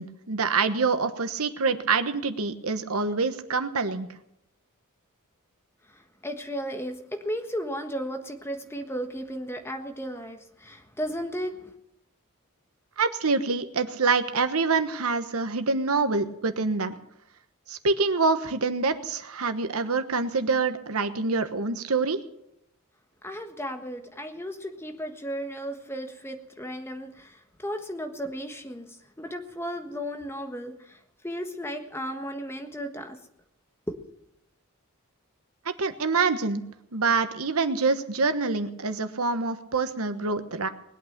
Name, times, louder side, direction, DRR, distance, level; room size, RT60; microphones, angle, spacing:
voice 1, 0.0-4.1 13.0-16.9 17.7-22.2 35.6-36.6 36.9-40.7, right 4 dB, 75° right, 10 dB, 1.2 m, -26 dB
voice 2, 6.2-11.7 23.2-28.9 29.2-31.0 31.2-33.2 33.9-34.0, equal, 10° left, 5 dB, 1.5 m, -34 dB
20.5 x 8.7 x 6.7 m, 0.79 s
head